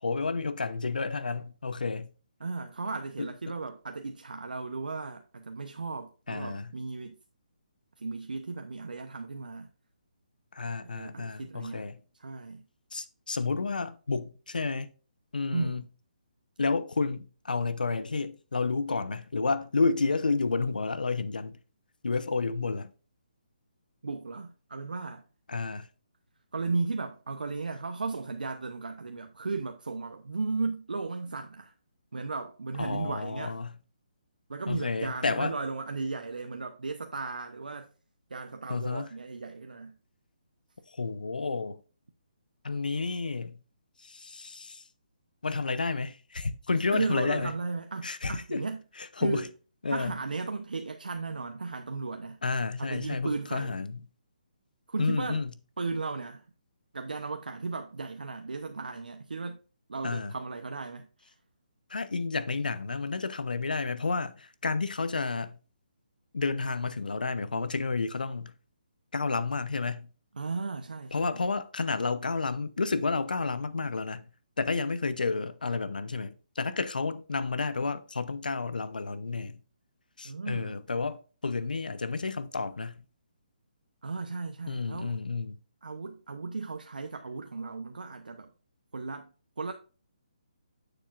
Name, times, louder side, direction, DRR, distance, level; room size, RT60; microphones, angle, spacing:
voice 1, 0.0-2.1 3.2-3.3 6.3-6.7 10.5-12.0 12.9-14.9 15.3-15.8 16.6-21.6 22.0-22.9 25.5-25.9 32.8-33.8 34.7-35.5 38.7-39.1 41.0-41.8 42.6-43.6 44.0-44.8 45.4-47.5 48.0-48.6 49.2-49.5 49.8-50.1 52.4-54.0 55.0-55.5 60.0-60.4 61.9-65.6 66.3-68.5 69.1-70.1 71.1-74.3 74.6-79.6 80.2-83.0 84.7-85.6, left 4 dB, 85° left, 0.8 m, -31 dB
voice 2, 2.4-7.2 8.0-9.7 10.8-11.9 12.2-12.6 15.5-15.8 24.0-25.2 26.5-31.7 32.1-33.6 34.5-37.9 38.3-40.0 46.9-48.8 49.2-49.5 49.9-52.4 52.8-53.8 54.9-55.4 55.8-56.5 56.9-59.6 59.9-61.3 70.4-71.4 80.2-80.8 84.0-85.2 85.8-88.5 88.9-89.7, right 4 dB, 85° right, 0.8 m, -35 dB
9.5 x 6.9 x 2.5 m
hypercardioid pair, 155°, 5 cm